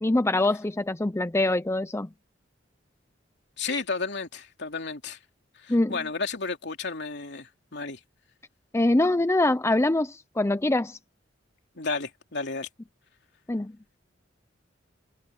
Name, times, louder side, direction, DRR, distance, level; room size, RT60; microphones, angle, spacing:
voice 1, 0.0-2.1 5.7-6.0 8.7-11.0 13.5-13.7, left 2 dB, 15° left, 0.6 m, -24 dB
voice 2, 3.6-5.2 5.5-8.0 11.8-12.7, left 4 dB, 65° left, 3.1 m, -32 dB
head